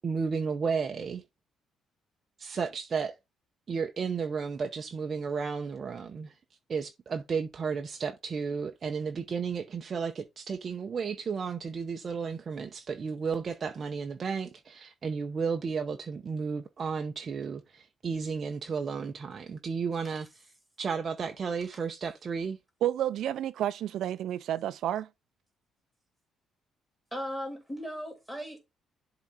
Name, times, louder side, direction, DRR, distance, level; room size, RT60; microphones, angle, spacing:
voice 1, 0.0-1.2 2.4-3.2 3.7-6.3 6.7-20.5 20.8-22.6, right 5 dB, 30° right, 0.7 m, -33 dB
voice 2, 22.8-25.1, right 11 dB, 60° right, 0.3 m, -30 dB
voice 3, 27.1-28.6, equal, ahead, 3.2 m, -37 dB
11.0 x 3.8 x 4.3 m
cardioid pair, 175°, 0 cm